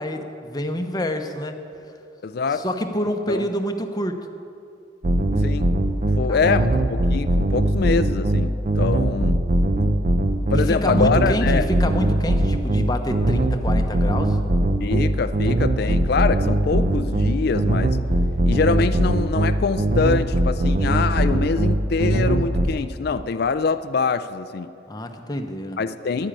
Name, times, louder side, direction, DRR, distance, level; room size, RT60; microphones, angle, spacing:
voice 1, 0.0-1.6 2.5-4.3 6.3-6.7 10.5-14.4 24.9-25.8, equal, 20° left, 5 dB, 0.8 m, -27 dB
voice 2, 2.2-2.6 3.3-3.5 5.4-5.6 6.2-9.4 10.5-11.6 14.8-18.0 18.5-24.7 25.8-26.3, left 4 dB, 55° left, 12 dB, 0.4 m, -24 dB
sound 1, 5.0-22.7, right 1 dB, 40° right, 0.6 m, -21 dB
10.5 x 9.9 x 8.9 m, 2.6 s
head